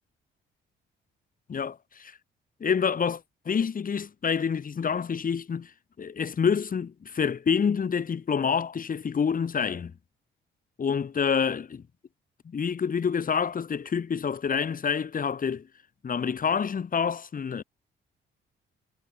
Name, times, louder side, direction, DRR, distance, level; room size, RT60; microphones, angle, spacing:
voice 1, 1.5-2.1 2.6-3.2 3.5-5.7 6.0-9.9 10.8-11.8 12.4-15.7 16.0-17.6, left 6 dB, 45° left, 4.5 m, -27 dB
cardioid pair, 90°, 20 cm